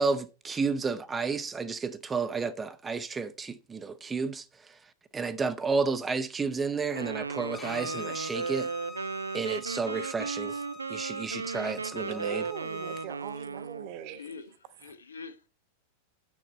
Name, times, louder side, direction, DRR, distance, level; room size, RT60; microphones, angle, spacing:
voice 1, 0.0-4.4 5.1-8.7 9.3-10.6 10.9-12.5, right 4 dB, 15° right, 0.7 m, -31 dB
Wind instrument woodwind instrument, 6.9-13.9, right 4 dB, 75° right, 0.3 m, -35 dB
Bowed string instrument, 7.5-13.1, left 4 dB, 15° left, 1.3 m, -45 dB
voice 2, 12.1-14.3, right 10 dB, 45° right, 1.1 m, -41 dB
voice 3, 14.1-15.5, left 5 dB, 75° left, 1.0 m, -45 dB
8.4 x 6.6 x 4.3 m
figure-of-eight pair, 90°, 0 cm